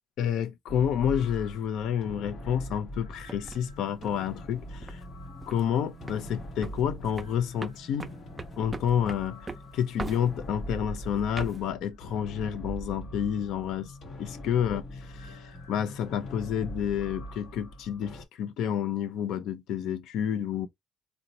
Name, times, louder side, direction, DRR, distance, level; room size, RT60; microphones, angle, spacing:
voice 1, 0.2-5.0 5.5-8.1 8.6-14.8 15.1-20.7, left 9 dB, 85° left, 0.5 m, -29 dB
sound 1, 0.7-18.2, equal, 65° left, 0.9 m, -42 dB
sound 2, 3.2-5.0 5.4-5.7 6.0-6.3 6.6-10.7 11.1-11.7, right 3 dB, 25° right, 0.4 m, -40 dB
3.9 x 2.1 x 2.7 m
cardioid pair, 90°, 0 cm